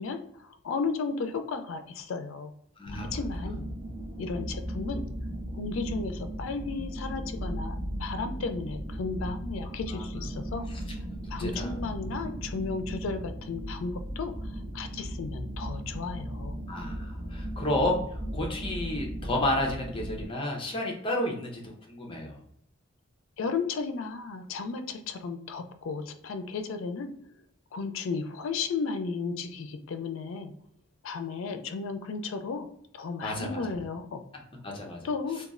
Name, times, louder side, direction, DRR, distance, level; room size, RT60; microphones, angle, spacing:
voice 1, 0.0-2.5 3.1-3.7 4.2-5.0 5.5-10.7 11.3-16.5 23.4-27.1 27.7-30.5 31.0-32.7 32.9-34.2 35.0-35.4, left 4 dB, 75° left, 8 dB, 0.4 m, -34 dB
sound 1, 2.8-20.3, right 1 dB, 5° right, 1.1 m, -36 dB
voice 2, 11.2-11.8 16.7-18.0 18.3-22.4 33.2-33.6 34.6-35.0, left 1 dB, 25° left, 0 dB, 0.5 m, -31 dB
3.0 x 2.3 x 2.4 m, 0.68 s
head